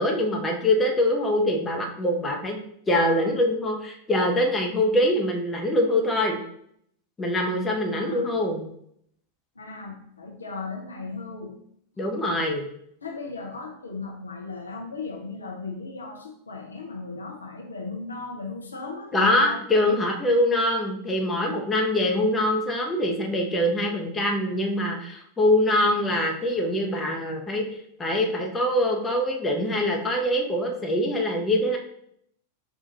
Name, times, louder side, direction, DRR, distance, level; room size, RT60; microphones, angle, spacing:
voice 1, 0.0-2.6 2.9-6.4 7.2-8.6 12.0-12.7 19.1-27.6 28.0-31.8, left 1 dB, 15° left, 1 dB, 0.7 m, -24 dB
voice 2, 7.9-8.4 9.6-11.6 13.0-19.6, left 4 dB, 75° left, 1 dB, 0.6 m, -36 dB
5.4 x 2.4 x 2.8 m, 0.70 s
figure-of-eight pair, 90°, 0 cm